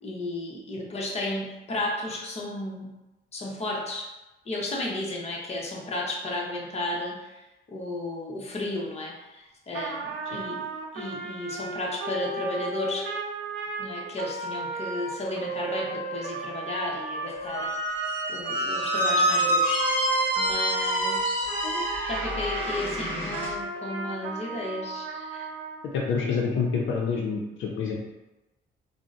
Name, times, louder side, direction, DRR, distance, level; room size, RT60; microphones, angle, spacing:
voice 1, 0.0-2.9 3.3-4.1 4.5-7.4 7.7-10.7 10.9-13.1 13.8-18.0 18.3-20.1 20.4-25.5, left 1 dB, 30° left, -2 dB, 0.7 m, -33 dB
Trumpet, 9.7-22.8 23.3-25.8, right 3 dB, 75° right, 0.5 m, -34 dB
Squeak, 17.4-23.5, right 1 dB, 10° right, 1.5 m, -27 dB
voice 2, 25.9-28.0, left 5 dB, 75° left, -1 dB, 0.5 m, -27 dB
3.7 x 2.0 x 2.4 m, 1.0 s
cardioid pair, 90°, 20 cm